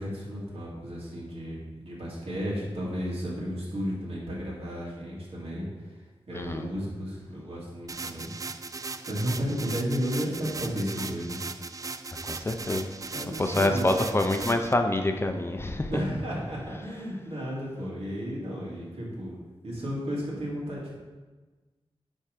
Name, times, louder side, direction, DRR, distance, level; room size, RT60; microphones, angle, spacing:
voice 1, 0.0-8.3 9.1-11.4 13.1-14.0 15.9-19.4 19.6-21.0, equal, 75° right, -5 dB, 2.4 m, -33 dB
voice 2, 6.3-6.7 12.3-12.9 13.4-15.9, left 1 dB, 25° left, 6 dB, 0.5 m, -26 dB
sound 1, 7.9-14.7, right 4 dB, 35° right, 0.4 m, -38 dB
10.0 x 3.6 x 5.1 m, 1.3 s
wide cardioid pair, 110°, 10 cm